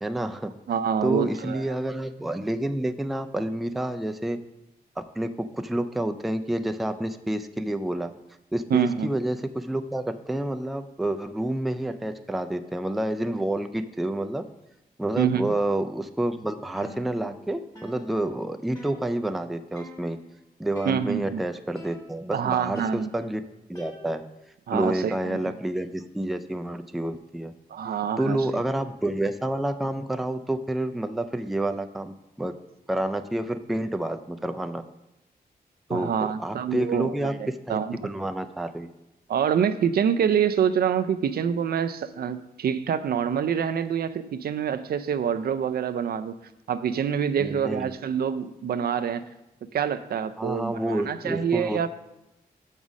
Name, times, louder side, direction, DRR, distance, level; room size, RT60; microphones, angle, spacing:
voice 1, 0.0-0.5 1.0-4.4 5.0-8.1 8.5-14.5 15.0-20.2 20.6-23.4 23.7-24.2 24.7-27.5 28.2-32.6 32.9-34.8 35.9-38.9 47.4-47.9 50.4-51.9, right 1 dB, ahead, 7 dB, 0.3 m, -29 dB
voice 2, 0.7-1.6 8.7-9.1 15.2-15.5 20.9-21.4 22.3-23.1 24.7-25.4 27.7-28.4 35.9-38.0 39.3-46.3 46.7-49.2 49.7-51.9, right 8 dB, 75° right, 11 dB, 0.4 m, -26 dB
sound 1, 16.8-17.5 17.8-19.4 19.8-20.3 20.8-21.4 21.8-22.4 22.8-24.5, left 2 dB, 25° left, 1.6 m, -47 dB
6.0 x 5.5 x 6.2 m, 0.91 s
wide cardioid pair, 135°, 16 cm